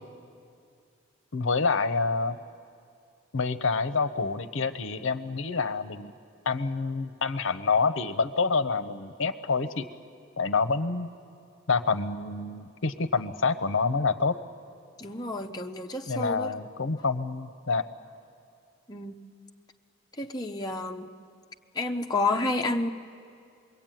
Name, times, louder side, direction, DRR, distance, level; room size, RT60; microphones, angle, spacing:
voice 1, 1.3-2.4 3.3-6.1 6.5-9.9 10.4-11.1 11.7-14.3 16.1-17.8, left 4 dB, 65° left, 12 dB, 0.7 m, -27 dB
voice 2, 15.0-16.7 18.9-19.2 20.2-21.1 21.7-22.9, left 2 dB, 20° left, 2 dB, 0.7 m, -30 dB
24.5 x 22.0 x 9.0 m, 2.3 s
head